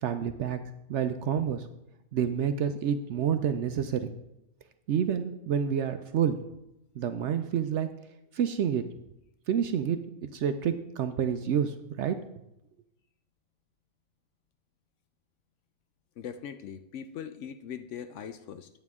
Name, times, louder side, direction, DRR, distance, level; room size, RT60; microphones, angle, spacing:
voice 1, 0.0-0.6 0.9-1.7 2.1-4.1 4.9-6.4 7.0-7.9 8.3-8.8 9.5-12.2, right 8 dB, 65° right, 9 dB, 0.7 m, -28 dB
voice 2, 16.2-18.7, left 8 dB, 65° left, 10 dB, 0.8 m, -40 dB
9.0 x 8.5 x 3.6 m, 0.88 s
omnidirectional pair, 1.5 m